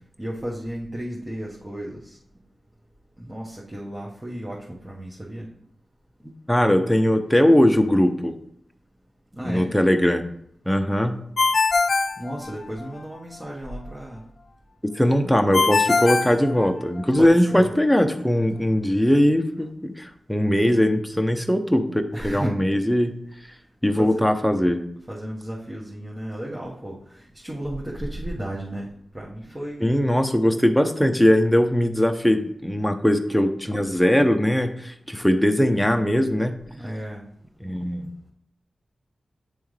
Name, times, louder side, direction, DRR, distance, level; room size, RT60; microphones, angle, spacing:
voice 1, 0.2-2.2 3.2-5.5 9.3-9.7 12.2-14.2 17.1-17.7 22.1-22.6 24.0-24.2 25.1-28.9 29.1-30.0 36.8-37.2, right 1 dB, 25° right, -5 dB, 1.4 m, -33 dB
voice 2, 6.5-8.4 9.4-10.2 10.6-11.2 14.9-23.2 23.8-24.8 29.8-36.8 37.6-38.1, equal, 5° left, 6 dB, 0.8 m, -20 dB
Ringtone, 11.4-13.0 15.5-17.2, left 4 dB, 65° left, 0.4 m, -22 dB
9.2 x 3.4 x 3.3 m, 0.68 s
cardioid pair, 40°, 0 cm